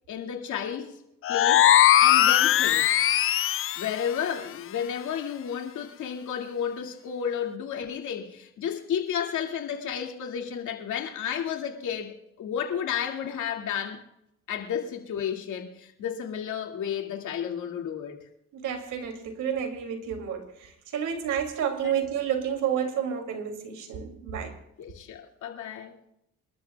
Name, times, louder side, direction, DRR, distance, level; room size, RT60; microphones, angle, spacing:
voice 1, 0.1-1.0 1.3-1.7 2.0-2.9 3.8-14.0 14.5-18.3 21.8-22.1 22.3-22.5 24.8-25.9, left 8 dB, 75° left, 2.4 m, -32 dB
sound 1, 1.2-3.9, left 12 dB, 45° left, 0.4 m, -20 dB
voice 2, 18.5-24.6, right 8 dB, 85° right, 2.8 m, -30 dB
27.5 x 13.0 x 2.4 m
cardioid pair, 90°, 30 cm